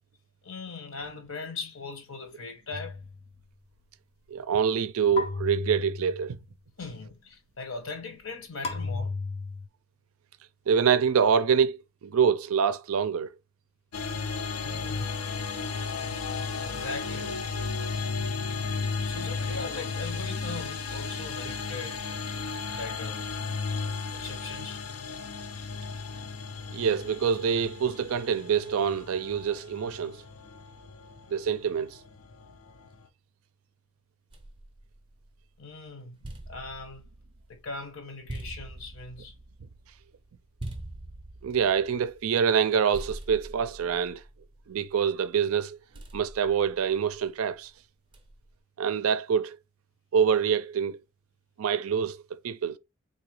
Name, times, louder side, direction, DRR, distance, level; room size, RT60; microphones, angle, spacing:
voice 1, 0.4-3.1 6.8-9.1 14.5-15.1 16.6-17.4 19.0-22.0 22.7-23.2 24.1-24.9 35.6-36.2 36.5-37.1 37.5-39.4, left 3 dB, 70° left, 1.0 m, -40 dB
sound 1, 2.7-3.4 5.2-6.5 8.6-9.7, left 3 dB, 30° left, 0.4 m, -34 dB
voice 2, 4.3-6.4 10.7-13.3 26.7-30.2 31.3-32.0 41.4-44.2 44.7-45.8 46.1-47.7 48.8-49.6 50.1-51.0 51.6-52.8, right 7 dB, 80° right, 0.4 m, -26 dB
sound 2, 13.9-33.1, left 4 dB, 85° left, 0.6 m, -34 dB
sound 3, 34.3-35.6 36.0-42.7 42.9-45.2 45.9-47.4 48.1-48.6, right 1 dB, 20° right, 0.5 m, -44 dB
3.8 x 2.7 x 3.1 m
head